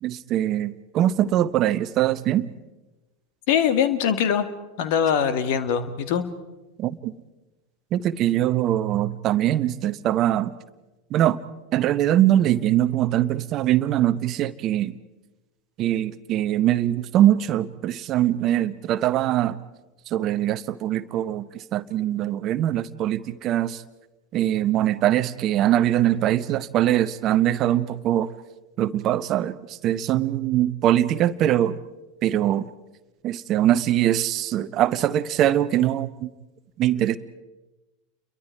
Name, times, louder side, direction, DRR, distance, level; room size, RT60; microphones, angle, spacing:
voice 1, 0.0-2.5 6.8-7.1 7.9-10.5 11.1-11.4 11.7-14.9 15.8-19.6 20.1-23.8 24.3-28.3 28.8-31.8 32.2-32.7 33.2-36.3 36.8-37.2, right 12 dB, 40° right, 14 dB, 0.9 m, -22 dB
voice 2, 3.5-4.5 4.8-6.2, left 8 dB, 55° left, 12 dB, 1.8 m, -22 dB
30.0 x 23.0 x 4.7 m, 1.1 s
figure-of-eight pair, 85°, 0 cm